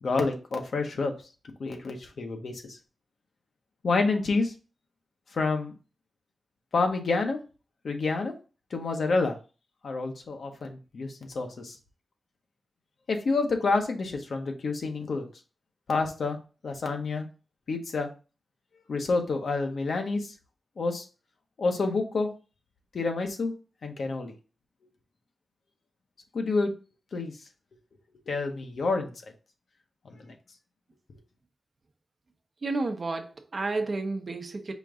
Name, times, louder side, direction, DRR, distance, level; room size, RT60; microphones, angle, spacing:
voice 1, 0.0-1.1 1.6-2.6 3.8-4.5 5.3-5.7 6.7-7.4 7.8-8.3 8.7-9.4 9.8-11.7 13.1-15.3 15.9-16.4 16.6-17.3 17.7-18.1 18.9-20.3 20.8-21.0 21.6-22.3 22.9-23.5 23.8-24.3 26.3-26.7 27.1-27.3 28.3-29.1 30.0-30.3, left 3 dB, 75° left, 0.9 m, -28 dB
voice 2, 32.6-34.7, right 3 dB, 50° right, 0.8 m, -31 dB
5.1 x 2.6 x 3.7 m
cardioid pair, 70°, 0 cm